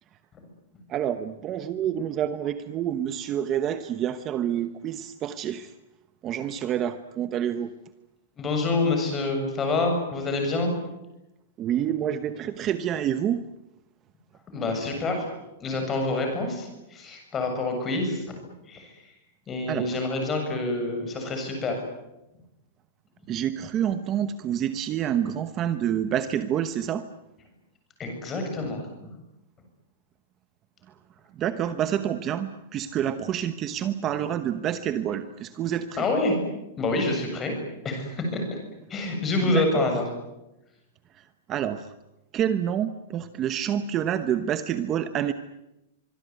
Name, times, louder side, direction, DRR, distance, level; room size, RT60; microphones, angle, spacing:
voice 1, 0.9-5.7 6.2-7.7 11.6-13.4 19.7-20.1 23.3-27.0 31.4-36.0 39.4-39.8 41.1-41.2 41.5-41.9 42.3-45.3, right 10 dB, 25° right, 11 dB, 1.0 m, -28 dB
voice 2, 8.4-10.7 14.5-15.2 15.6-18.4 18.7-18.9 19.5-21.8 28.0-29.1 36.0-36.4 36.8-37.5 37.8-38.6 38.9-40.0, left 2 dB, 15° left, 4 dB, 7.4 m, -27 dB
25.0 x 22.5 x 9.5 m, 0.95 s
supercardioid pair, 170°, 0 cm